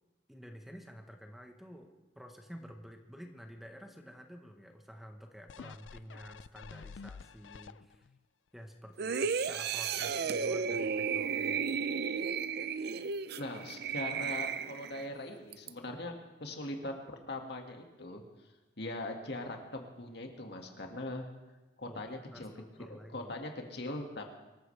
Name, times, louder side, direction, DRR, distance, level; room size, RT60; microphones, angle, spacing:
voice 1, 0.3-8.1 8.5-11.8 21.9-23.3, equal, ahead, 4 dB, 1.2 m, -50 dB
sound 1, 5.5-8.2 8.7-8.8, left 5 dB, 85° left, 0.4 m, -49 dB
sound 2, 9.0-15.1 15.5-15.7, right 6 dB, 60° right, 0.6 m, -34 dB
voice 2, 13.4-16.1 16.4-17.0 17.3-18.2 18.8-21.3 21.8-22.5 23.1-24.3, left 1 dB, 65° left, 2 dB, 2.0 m, -40 dB
24.5 x 14.0 x 3.4 m, 1.1 s
head